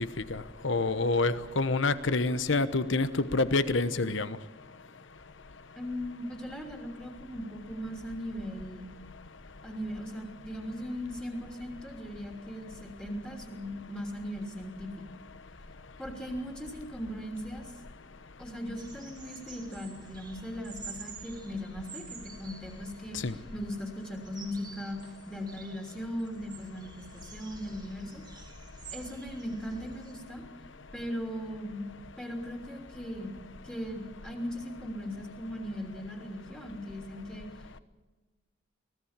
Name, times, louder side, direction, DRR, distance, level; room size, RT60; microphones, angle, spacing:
voice 1, 0.0-4.4 23.2-23.3, left 3 dB, 65° left, 13 dB, 1.1 m, -27 dB
voice 2, 5.7-8.9 9.6-14.9 16.0-17.7 18.4-25.0 25.3-28.2 28.9-30.4 30.9-31.8 32.2-33.4 33.6-37.5, equal, 5° left, 1 dB, 3.1 m, -38 dB
sound 1, 18.8-30.1, right 5 dB, 20° right, 2.3 m, -50 dB
24.0 x 17.5 x 7.4 m, 1.2 s
head